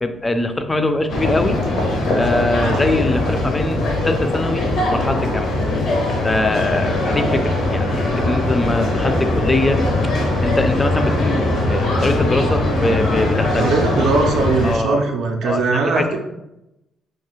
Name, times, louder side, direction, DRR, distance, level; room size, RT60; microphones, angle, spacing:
voice 1, 0.0-1.6 2.1-5.5 6.2-9.8 10.4-13.7 14.6-15.0 15.4-16.2, left 2 dB, 20° left, 8 dB, 0.3 m, -22 dB
sound 1, 1.1-14.8, left 2 dB, 70° left, 0.6 m, -20 dB
voice 2, 13.6-16.2, right 4 dB, 80° right, 1 dB, 0.4 m, -19 dB
2.3 x 2.3 x 3.0 m, 0.90 s
cardioid pair, 80°, 0 cm